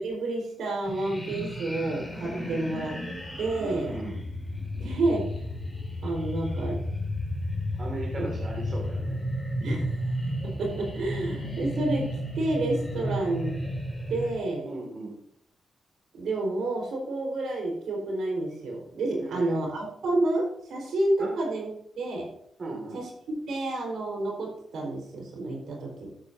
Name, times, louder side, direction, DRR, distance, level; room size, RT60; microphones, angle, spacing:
voice 1, 0.0-2.9 3.4-3.9 4.8-5.2 6.0-6.8 8.2-8.3 9.6-10.0 10.4-13.5 14.1-14.7 16.1-21.7 22.0-22.3 22.9-26.1, right 2 dB, 85° right, 0 dB, 4.4 m, -29 dB
sound 1, 0.8-14.3, equal, 5° left, 3.4 m, -33 dB
voice 2, 2.3-2.8 3.6-4.2 7.8-9.2 12.9-13.1 14.6-15.2 19.1-19.6 21.2-21.4 22.6-23.0, right 2 dB, 40° right, 0 dB, 2.2 m, -37 dB
13.5 x 11.0 x 2.7 m, 0.70 s
wide cardioid pair, 155°, 0 cm